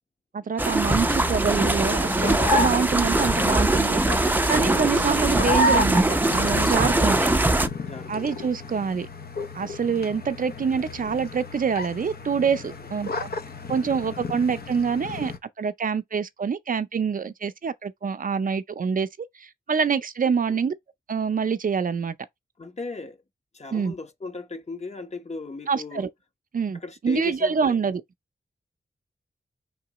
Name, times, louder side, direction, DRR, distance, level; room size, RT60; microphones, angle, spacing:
voice 1, 0.3-4.0 4.5-7.3 8.1-9.1 9.5-13.3 13.7-15.3 15.6-19.1 19.4-20.7 21.1-22.2 23.7-23.9 25.7-26.1 26.5-28.0, right 6 dB, 55° right, 0.5 m, -26 dB
sound 1, 0.6-7.7, right 2 dB, 10° right, 0.6 m, -22 dB
sound 2, 0.9-15.4, left 2 dB, 65° left, 0.7 m, -32 dB
voice 2, 7.8-8.5 20.5-20.6 22.6-23.2 23.5-26.1 26.7-27.8, left 3 dB, 40° left, 1.1 m, -37 dB
4.7 x 3.7 x 3.0 m
wide cardioid pair, 85°, 17 cm